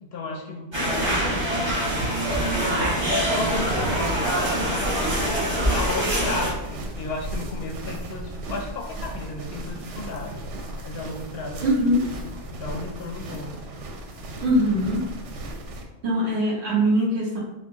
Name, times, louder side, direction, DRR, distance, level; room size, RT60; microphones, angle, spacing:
voice 1, 0.0-5.3 5.7-10.4 10.8-11.9 12.4-13.5, left 3 dB, 65° left, 1 dB, 0.8 m, -33 dB
sound 1, 0.7-6.5, right 1 dB, 25° right, 0.8 m, -24 dB
sound 2, 3.5-15.8, right 1 dB, 85° right, 0.9 m, -36 dB
voice 2, 11.6-12.0 14.4-15.0 16.0-17.4, equal, 65° right, -3 dB, 1.2 m, -22 dB
4.3 x 2.1 x 2.9 m, 0.94 s
omnidirectional pair, 1.2 m